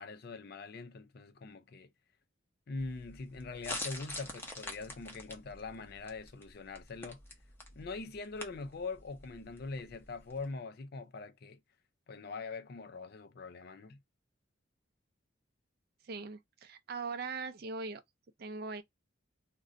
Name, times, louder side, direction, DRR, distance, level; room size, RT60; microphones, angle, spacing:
voice 1, 0.0-1.9 2.7-7.2 7.7-11.6 12.1-14.0, left 3 dB, 50° left, 0.4 m, -43 dB
sound 1, 2.8-10.5, left 1 dB, 10° left, 0.6 m, -46 dB
voice 2, 16.0-18.0 18.4-18.8, right 4 dB, 50° right, 0.4 m, -40 dB
2.5 x 2.2 x 3.7 m
head